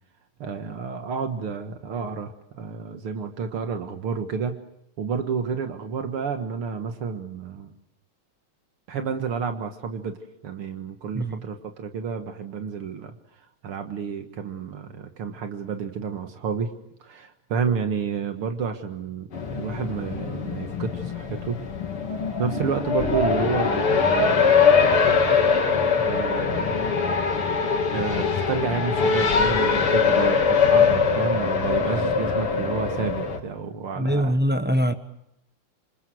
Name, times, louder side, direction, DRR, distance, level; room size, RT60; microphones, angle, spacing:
voice 1, 0.4-4.6 5.0-7.7 8.9-10.2 10.4-13.2 13.6-16.7 17.0-21.6 22.4-24.5 26.0-26.9 27.9-34.4, right 6 dB, 75° right, 6 dB, 2.5 m, -30 dB
Race car auto racing, 19.3-33.4, left 5 dB, 80° left, 3.4 m, -22 dB
voice 2, 33.9-34.9, equal, 10° right, 9 dB, 0.7 m, -23 dB
27.0 x 26.5 x 7.9 m, 0.78 s
omnidirectional pair, 2.4 m